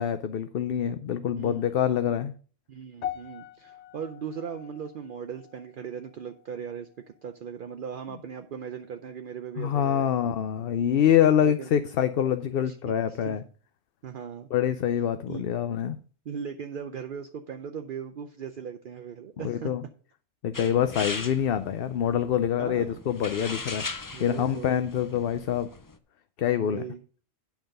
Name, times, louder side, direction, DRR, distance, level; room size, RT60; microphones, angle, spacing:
voice 1, 0.0-2.3 9.6-13.4 14.5-16.0 19.4-19.8 20.4-23.8 24.2-25.7 26.4-26.8, left 9 dB, 65° left, 11 dB, 0.8 m, -25 dB
voice 2, 1.4-1.7 2.7-10.1 11.4-11.7 12.6-13.4 14.0-14.5 15.3-15.4 16.3-19.7 22.6-23.0 24.1-24.7 26.6-27.0, right 7 dB, 55° right, 6 dB, 0.8 m, -38 dB
sound 1, 3.0-7.4 7.7-8.1 8.7-8.8, left 10 dB, 85° left, 0.9 m, -43 dB
sound 2, 20.5-26.0, left 3 dB, 25° left, 0.5 m, -39 dB
9.0 x 5.8 x 6.5 m, 0.40 s
omnidirectional pair, 1.1 m